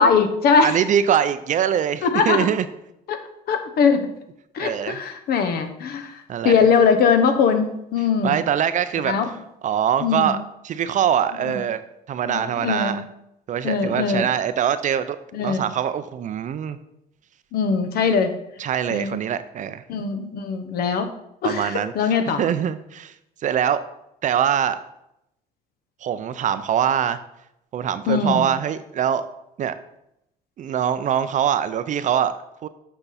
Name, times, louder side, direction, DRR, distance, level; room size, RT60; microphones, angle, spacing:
voice 1, 0.0-0.7 2.0-2.4 3.1-3.2 3.5-4.1 4.5-8.4 9.0-9.3 10.0-10.3 11.4-11.6 12.3-13.0 13.6-14.3 15.3-15.6 17.5-18.3 18.9-19.2 19.9-21.1 21.4-22.4 28.1-28.4, left 5 dB, 65° left, 8 dB, 1.0 m, -21 dB
voice 2, 0.6-2.7 4.6-5.0 6.3-6.6 8.2-9.1 9.6-10.4 10.6-11.8 12.1-13.0 13.5-16.8 18.6-19.8 21.4-23.1 23.4-23.8 24.2-24.8 26.0-27.2 27.7-29.3 29.6-29.7 30.6-32.3 32.6-32.7, right 9 dB, 50° right, 12 dB, 0.5 m, -23 dB
7.9 x 5.9 x 4.1 m, 0.82 s
cardioid pair, 110°, 17 cm